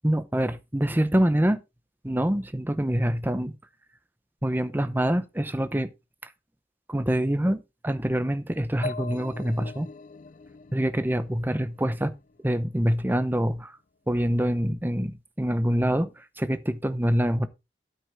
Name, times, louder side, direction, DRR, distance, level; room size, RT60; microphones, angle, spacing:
voice 1, 0.0-1.6 2.0-3.5 4.4-5.9 6.9-9.9 10.7-12.1 12.4-13.8 14.1-17.5, equal, 10° right, 0.8 m, -25 dB
sound 1, 8.8-12.5, left 3 dB, 45° left, 0.4 m, -41 dB
9.2 x 8.4 x 3.5 m
head